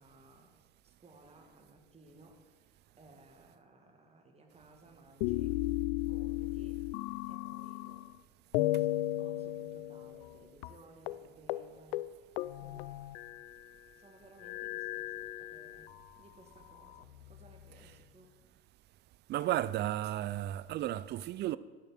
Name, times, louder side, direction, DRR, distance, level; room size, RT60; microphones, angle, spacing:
voice 1, 0.0-5.6 6.1-6.8 7.3-8.1 8.5-13.2 14.0-18.3, right 2 dB, 20° right, 1.8 m, -60 dB
sound 1, 5.2-8.2 8.5-10.4 10.6-10.7 11.1-11.2 11.5-11.7 11.9-13.7 14.4-16.0 16.7-17.6, left 16 dB, 70° left, 0.5 m, -35 dB
voice 2, 19.3-21.6, right 13 dB, 35° right, 0.4 m, -33 dB
10.5 x 5.9 x 6.3 m
hypercardioid pair, 75°, 31 cm